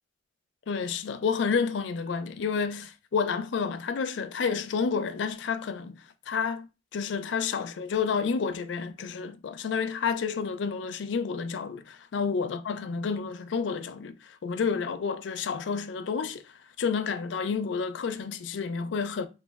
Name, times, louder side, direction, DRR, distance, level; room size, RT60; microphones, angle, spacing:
voice 1, 0.7-6.7 6.9-19.3, left 5 dB, 80° left, 0.4 m, -30 dB
3.0 x 2.1 x 3.3 m
head